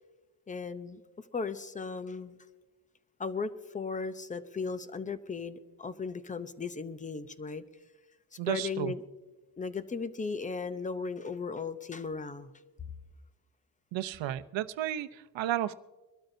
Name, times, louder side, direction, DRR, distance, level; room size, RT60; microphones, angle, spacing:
voice 1, 0.5-1.0 1.3-2.4 3.2-7.6 8.4-9.0 9.6-12.5, left 4 dB, 15° left, 12 dB, 0.6 m, -36 dB
voice 2, 8.4-8.9 13.9-15.7, right 13 dB, 70° right, 11 dB, 0.8 m, -32 dB
23.5 x 13.0 x 2.7 m, 1.2 s
cardioid pair, 125°, 47 cm